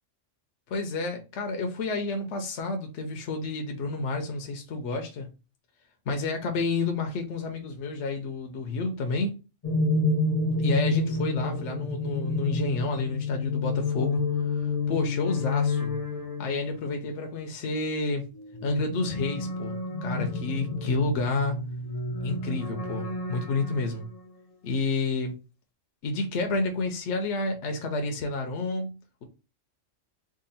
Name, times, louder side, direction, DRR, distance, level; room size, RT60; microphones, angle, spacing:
voice 1, 0.7-5.3 6.1-9.3 10.6-14.2 14.5-16.0 16.4-18.3 18.6-21.6 22.2-24.1 24.6-25.3 26.0-29.2, left 3 dB, 70° left, 1.0 m, -30 dB
sound 1, 9.6-17.1 18.3-24.3, left 3 dB, 40° left, 0.5 m, -29 dB
3.7 x 2.3 x 4.0 m
omnidirectional pair, 1.3 m